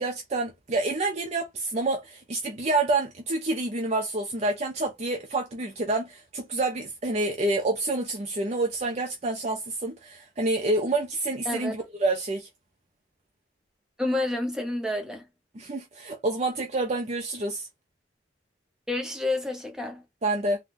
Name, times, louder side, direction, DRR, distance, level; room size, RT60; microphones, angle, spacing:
voice 1, 0.0-12.5 15.5-17.7 20.2-20.6, right 2 dB, 40° right, 0.6 m, -28 dB
voice 2, 14.0-15.2 18.9-20.0, left 2 dB, 5° right, 0.8 m, -29 dB
3.6 x 2.3 x 2.5 m
head